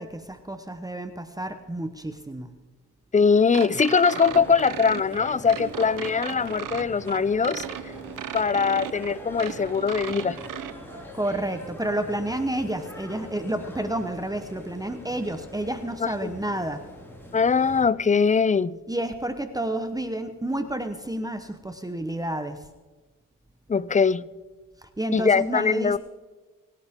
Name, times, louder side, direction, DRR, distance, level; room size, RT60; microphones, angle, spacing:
voice 1, 0.0-2.5 11.1-16.8 18.9-22.6 25.0-26.0, right 1 dB, 10° right, 1.1 m, -30 dB
voice 2, 3.1-7.9 8.3-10.4 16.0-16.3 17.3-18.8 23.7-24.3 25.1-26.0, left 5 dB, 20° left, 0.6 m, -22 dB
sound 1, 3.5-10.7, right 11 dB, 75° right, 0.9 m, -36 dB
sound 2, 4.2-17.8, equal, 5° left, 5.2 m, -42 dB
27.0 x 11.5 x 3.7 m
cardioid pair, 90°, 33 cm